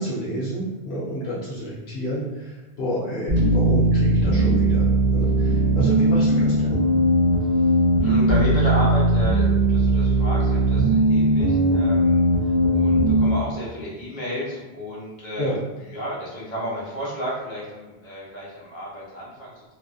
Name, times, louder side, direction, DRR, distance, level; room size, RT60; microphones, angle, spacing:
voice 1, 0.0-6.8 15.4-15.6, equal, 75° left, -7 dB, 0.9 m, -29 dB
sound 1, 3.3-13.3, right 1 dB, 45° right, 0.8 m, -19 dB
sound 2, 3.4-9.9 10.2-10.6 11.0-11.1, left 1 dB, 15° right, 0.8 m, -34 dB
voice 2, 8.0-12.3 12.7-15.6 15.9-19.6, equal, 50° left, -7 dB, 1.0 m, -31 dB
2.5 x 2.4 x 2.3 m, 1.1 s
omnidirectional pair, 1.1 m